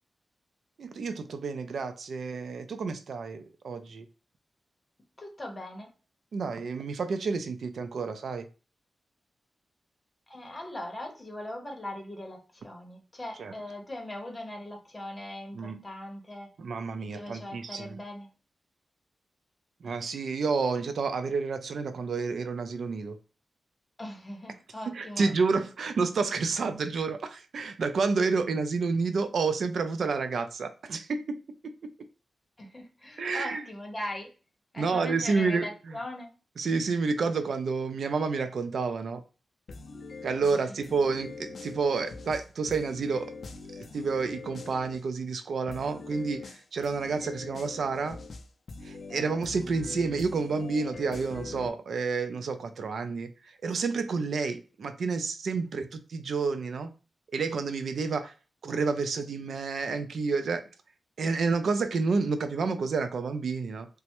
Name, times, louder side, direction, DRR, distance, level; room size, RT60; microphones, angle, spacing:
voice 1, 0.8-4.1 6.3-8.5 13.4-13.5 15.5-15.8 16.6-18.0 19.8-23.2 24.9-31.4 31.6-31.9 33.2-33.6 34.8-36.0 36.6-39.2 40.2-43.3 43.7-48.2 48.8-56.9 57.3-58.3 58.6-60.7 61.2-63.9, right 4 dB, 70° right, 0.3 m, -30 dB
voice 2, 5.2-5.9 10.3-16.5 17.1-18.3 24.0-25.3 32.6-34.3 34.7-36.3, left 1 dB, 20° left, 0.8 m, -40 dB
sound 1, 39.7-45.0 45.7-51.7, left 4 dB, 55° left, 0.4 m, -43 dB
3.2 x 2.0 x 2.8 m
wide cardioid pair, 135°, 0 cm